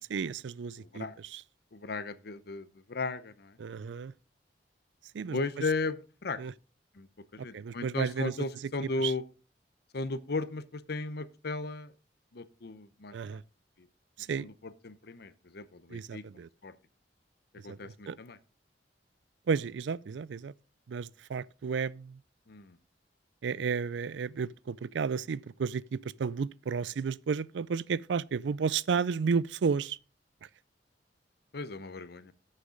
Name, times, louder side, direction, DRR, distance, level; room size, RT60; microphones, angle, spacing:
voice 1, 0.1-1.4 3.6-4.1 5.1-5.4 6.4-6.5 7.4-8.3 9.0-9.1 13.1-13.4 14.2-14.5 15.9-16.5 17.7-18.2 19.5-20.5 20.9-22.2 23.4-30.0, right 5 dB, 80° right, 0.4 m, -32 dB
voice 2, 0.8-1.1 1.7-3.6 5.3-6.4 7.0-7.1 7.3-9.2 9.9-11.9 12.3-13.4 14.3-16.2 16.6-16.8 17.6-18.4 22.5-22.8 31.5-32.3, left 3 dB, 60° left, 0.7 m, -36 dB
12.5 x 6.6 x 3.8 m
head